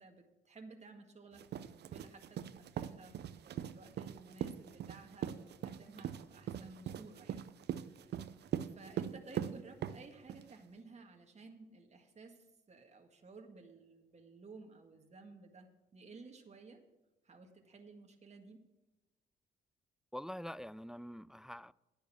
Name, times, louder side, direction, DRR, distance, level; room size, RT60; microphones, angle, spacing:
voice 1, 0.0-7.4 7.7-8.3 8.6-16.8 17.2-18.6, right 3 dB, 35° right, 3 dB, 1.9 m, -55 dB
sound 1, 1.3-10.5, right 9 dB, 60° right, 0.7 m, -41 dB
voice 2, 20.1-21.7, equal, 5° right, 21 dB, 0.3 m, -45 dB
10.5 x 6.7 x 9.3 m, 1.1 s
supercardioid pair, 55°, 19 cm